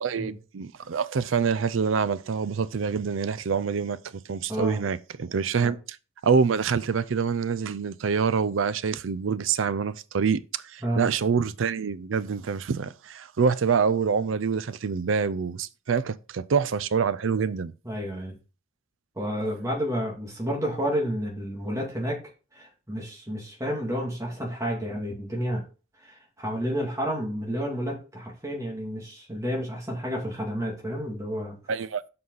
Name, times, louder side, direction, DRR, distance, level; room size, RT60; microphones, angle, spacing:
voice 1, 0.0-4.0 4.3-6.0 6.2-17.7 31.7-32.0, right 6 dB, 75° right, 0.5 m, -26 dB
voice 2, 4.5-4.8 5.6-5.7 10.8-11.1 17.8-18.3 19.2-22.2 22.5-25.6 26.0-31.6, equal, 15° right, 2.4 m, -30 dB
7.7 x 5.5 x 4.0 m
head